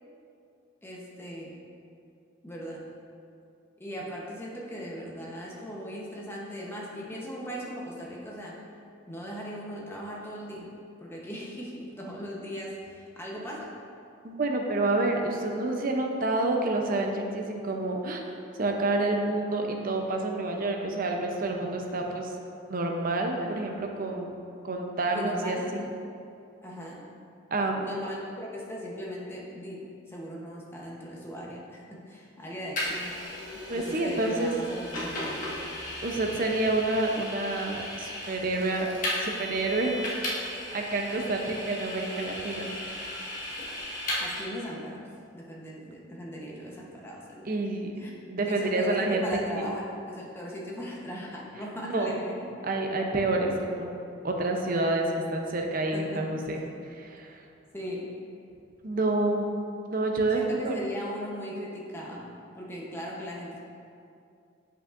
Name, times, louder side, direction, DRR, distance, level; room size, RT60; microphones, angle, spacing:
voice 1, 0.8-1.6 2.4-2.8 3.8-8.5 9.1-10.7 11.0-13.7 23.4-23.5 25.1-25.7 26.6-27.0 27.8-33.1 33.7-35.5 44.2-45.0 45.3-47.5 48.0-48.1 48.4-52.5 55.9-56.6 57.7-58.1 60.3-63.6, equal, 10° left, -4 dB, 0.8 m, -38 dB
voice 2, 14.2-18.2 18.6-22.3 22.7-24.3 24.6-25.9 27.5-27.9 33.7-34.5 36.0-38.9 39.2-40.0 40.3-40.4 40.7-43.0 47.4-47.9 48.3-49.7 51.8-52.2 52.6-53.9 54.2-56.6 56.9-57.4 58.8-59.5 59.9-60.8, right 2 dB, 45° right, 2 dB, 0.6 m, -28 dB
Vehicle, 32.8-44.4, left 1 dB, 40° left, 1.3 m, -36 dB
8.1 x 5.5 x 2.5 m, 2.5 s
head